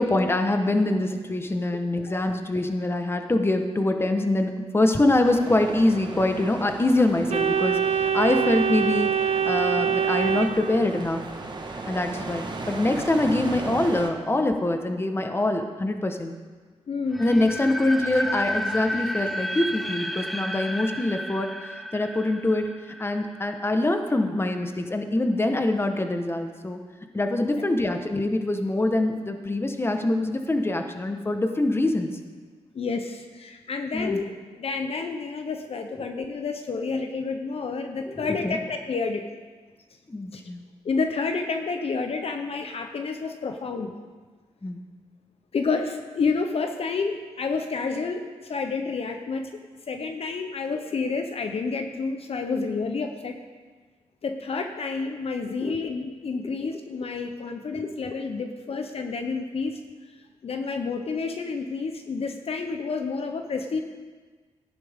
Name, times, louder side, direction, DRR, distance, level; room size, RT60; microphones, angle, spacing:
voice 1, 0.0-11.2 11.9-16.3 17.2-22.7 23.0-26.8 27.1-32.1 33.9-34.2 38.1-38.6 40.1-40.6 44.6-44.8 55.6-55.7, left 2 dB, 20° left, 5 dB, 1.2 m, -24 dB
sound 1, 5.2-14.1, right 3 dB, 40° right, 1.4 m, -37 dB
Organ, 7.3-11.2, right 7 dB, 70° right, 0.7 m, -24 dB
voice 2, 16.9-17.3 27.5-27.6 32.7-34.3 34.6-39.2 40.3-40.4 40.8-43.9 45.5-49.5 49.9-53.4 54.2-59.8 60.4-63.8, left 4 dB, 60° left, 5 dB, 0.8 m, -29 dB
sound 2, 17.1-24.0, equal, ahead, 0.6 m, -32 dB
15.0 x 10.5 x 3.6 m, 1.4 s
cardioid pair, 80°, 12 cm